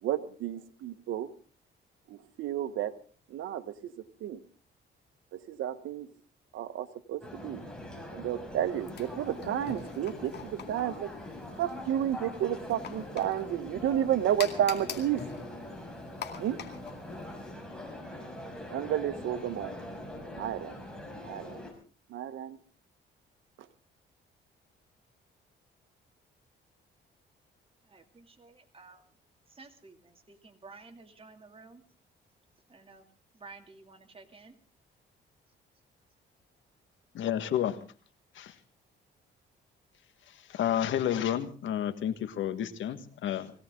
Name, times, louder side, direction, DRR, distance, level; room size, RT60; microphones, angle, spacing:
voice 1, 0.0-1.3 2.1-2.9 3.3-3.9 4.2-4.4 5.3-6.1 6.5-7.6 8.1-11.1 11.6-15.2 16.4-16.6 18.7-19.7 20.3-20.8 21.2-21.6 22.1-22.6, right 11 dB, 80° right, 12 dB, 1.2 m, -31 dB
sound 1, 7.2-21.7, left 1 dB, 5° left, 6.0 m, -43 dB
sound 2, 8.7-17.5, left 7 dB, 55° left, 2.3 m, -46 dB
voice 2, 27.9-29.0 29.5-31.8 32.7-33.0 33.3-34.5, right 4 dB, 30° right, 4 dB, 2.7 m, -52 dB
voice 3, 37.1-37.8 38.3-38.5 40.5-43.5, left 10 dB, 75° left, 11 dB, 1.7 m, -30 dB
22.0 x 17.0 x 3.8 m, 0.39 s
cardioid pair, 90°, 20 cm